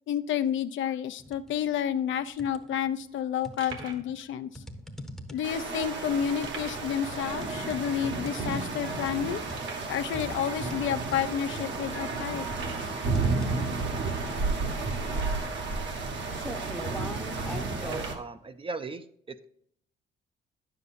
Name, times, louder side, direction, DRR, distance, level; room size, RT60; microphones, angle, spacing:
voice 1, 0.1-4.6 5.3-9.4 9.9-12.9, left 9 dB, 75° left, 9 dB, 0.6 m, -30 dB
sound 1, 1.2-1.6 2.0-2.9 3.4-18.1, equal, ahead, 0.8 m, -43 dB
sound 2, 2.1-2.2 2.4-2.5 3.1-3.2 3.6-4.1 4.9-5.0 6.4-7.0 7.3-7.4 7.8-7.9 8.5-8.6 9.5-10.0 10.8-10.9 11.5-11.6 12.5-13.0 15.1-15.6 16.4-16.5 17.8-18.3, right 5 dB, 85° right, 1.3 m, -44 dB
sound 3, 5.4-18.1, right 3 dB, 65° right, 1.4 m, -32 dB
voice 2, 17.7-19.4, right 4 dB, 25° right, 11 dB, 0.5 m, -38 dB
9.6 x 6.8 x 2.5 m, 0.67 s
cardioid pair, 90°, 20 cm